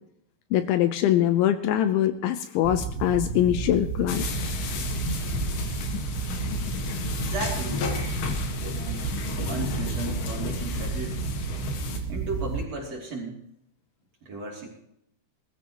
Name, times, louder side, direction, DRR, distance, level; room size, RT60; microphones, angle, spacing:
voice 1, 0.5-4.2, left 11 dB, 80° left, 10 dB, 2.8 m, -23 dB
sound 1, 2.6-12.6, right 5 dB, 80° right, 3.8 m, -32 dB
sound 2, 4.1-12.0, left 4 dB, 65° left, 3.2 m, -32 dB
voice 2, 7.2-7.9 8.7-11.2 12.1-13.4 14.2-14.7, right 3 dB, 40° right, -2 dB, 3.3 m, -35 dB
20.5 x 14.5 x 3.0 m, 0.75 s
omnidirectional pair, 5.7 m